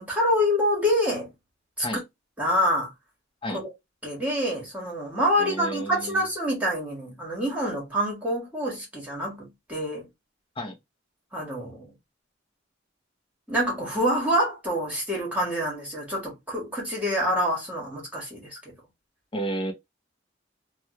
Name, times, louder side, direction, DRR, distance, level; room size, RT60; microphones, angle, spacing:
voice 1, 0.0-1.3 1.8-2.0 2.4-2.9 3.5-3.7 4.0-10.1 11.3-11.9 13.5-18.7, equal, 10° right, 1.4 m, -26 dB
voice 2, 5.4-6.3 10.6-10.8 19.3-19.7, right 1 dB, 30° left, 0.8 m, -31 dB
3.0 x 2.3 x 2.9 m
head